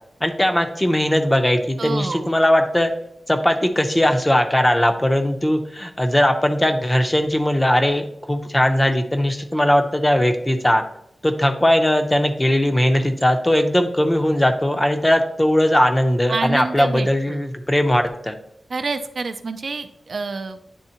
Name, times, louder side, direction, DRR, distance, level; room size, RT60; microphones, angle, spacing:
voice 1, 0.2-2.9 3.3-10.8 11.2-18.4, left 1 dB, 15° left, 5 dB, 0.6 m, -19 dB
voice 2, 1.8-2.3 16.3-17.5 18.7-20.6, right 4 dB, 60° right, 7 dB, 0.4 m, -28 dB
9.9 x 3.5 x 2.8 m, 0.75 s
wide cardioid pair, 125°, 0 cm